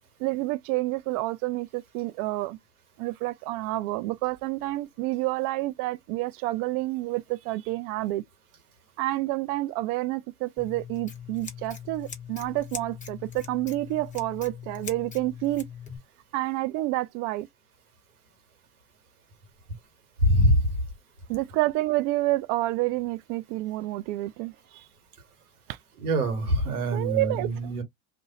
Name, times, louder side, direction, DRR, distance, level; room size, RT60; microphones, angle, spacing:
voice 1, 0.2-2.6 3.0-8.2 9.0-15.7 16.3-17.5 21.3-24.5 26.9-27.5, right 18 dB, 50° right, 0.4 m, -29 dB
Scissors, 10.6-16.0, left 7 dB, 15° left, 0.9 m, -41 dB
voice 2, 20.2-20.6 26.0-27.8, equal, 85° right, 1.2 m, -23 dB
2.5 x 2.2 x 2.8 m
hypercardioid pair, 85°, 43 cm